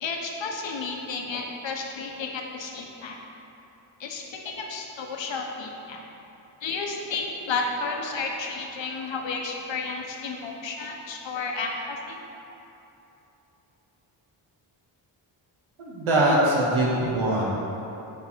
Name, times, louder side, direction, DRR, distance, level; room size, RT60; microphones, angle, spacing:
voice 1, 0.0-3.2 4.0-6.0 6.6-12.2, left 4 dB, 65° left, 1 dB, 1.2 m, -32 dB
voice 2, 15.8-17.5, right 1 dB, 80° right, -5 dB, 1.5 m, -22 dB
9.3 x 4.6 x 4.6 m, 3.0 s
cardioid pair, 65°, 49 cm